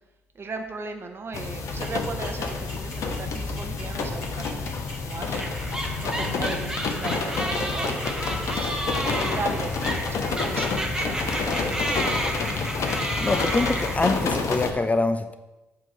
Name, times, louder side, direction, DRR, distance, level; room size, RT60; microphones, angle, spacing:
voice 1, 0.3-5.7 5.9-12.1, right 3 dB, 35° right, 5 dB, 0.9 m, -37 dB
sound 1, 1.3-14.7, left 4 dB, 55° left, 0.8 m, -29 dB
sound 2, 1.8-8.5, left 2 dB, 75° left, 1.5 m, -43 dB
sound 3, 5.3-14.4, right 1 dB, 10° right, 1.0 m, -31 dB
voice 2, 13.2-15.3, left 3 dB, 20° left, 9 dB, 0.4 m, -24 dB
7.7 x 3.0 x 5.1 m, 1.0 s
figure-of-eight pair, 45°, 6 cm